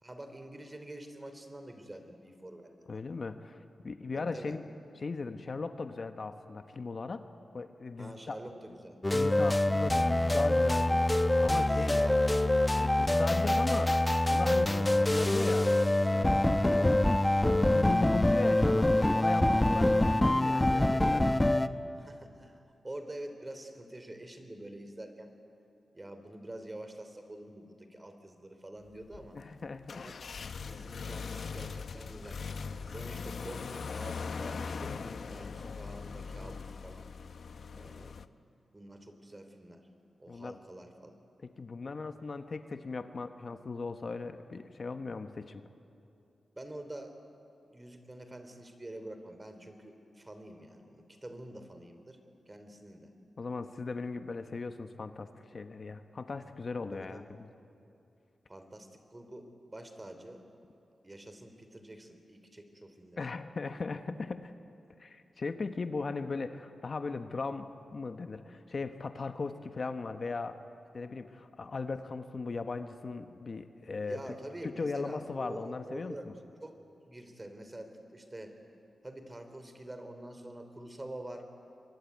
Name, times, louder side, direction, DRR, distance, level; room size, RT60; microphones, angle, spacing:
voice 1, 0.0-3.0 4.1-4.6 8.0-9.0 11.6-12.5 19.6-19.9 21.9-25.3 25.9-29.4 29.9-30.2 30.5-32.4 32.8-37.1 37.8-38.2 38.7-39.9 40.2-41.1 46.5-47.2 47.6-52.2 52.5-53.1 56.9-57.3 58.5-60.5 61.0-63.2 74.0-76.3 76.6-78.6 79.0-81.5, right 1 dB, 25° right, 8 dB, 3.2 m, -46 dB
voice 2, 2.9-4.6 5.0-7.2 7.5-8.4 9.1-12.1 12.8-14.0 14.3-15.7 16.1-16.5 16.8-17.0 17.4-21.4 29.3-30.0 40.3-40.6 41.4-45.6 53.4-57.2 63.2-64.5 65.0-70.6 70.9-74.2 74.6-76.3, left 4 dB, 50° left, 8 dB, 1.1 m, -38 dB
sound 1, 9.0-21.7, left 1 dB, 15° left, 0.8 m, -25 dB
sound 2, 29.0-38.2, left 5 dB, 70° left, 0.8 m, -40 dB
23.5 x 22.0 x 9.4 m, 2.7 s
cardioid pair, 70°, 0 cm